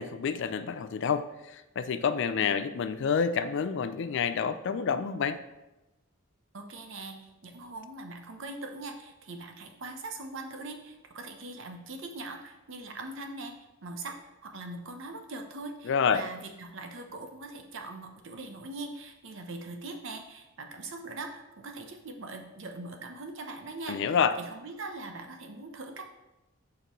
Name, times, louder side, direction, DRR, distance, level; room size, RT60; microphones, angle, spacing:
voice 1, 0.0-5.4 15.8-16.2 23.9-24.4, left 6 dB, 60° left, 12 dB, 0.4 m, -28 dB
voice 2, 6.5-13.6 13.8-14.1 14.4-24.0 24.4-26.0, right 2 dB, 65° right, 5 dB, 0.8 m, -41 dB
6.6 x 5.2 x 3.1 m, 0.99 s
head